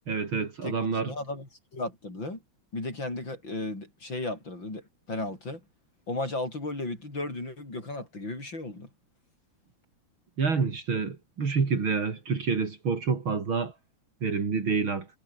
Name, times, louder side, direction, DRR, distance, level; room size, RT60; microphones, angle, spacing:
voice 1, 0.1-1.1 10.4-13.7 14.2-15.1, right 5 dB, 70° right, 4.0 m, -28 dB
voice 2, 0.6-2.4 2.7-5.6 6.1-8.9, left 2 dB, 60° left, 8.5 m, -35 dB
omnidirectional pair, 2.3 m